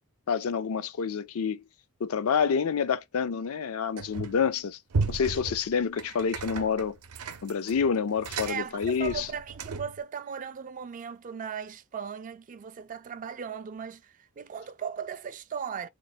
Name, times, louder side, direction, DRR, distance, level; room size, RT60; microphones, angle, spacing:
voice 1, 0.3-1.6 2.0-4.8 5.1-7.0 7.4-9.3, left 6 dB, 70° left, 0.4 m, -28 dB
sound 1, 4.0-4.5 4.9-10.0, right 4 dB, 80° right, 0.6 m, -35 dB
voice 2, 8.5-15.9, right 7 dB, 35° right, 0.3 m, -37 dB
3.1 x 2.1 x 4.0 m
head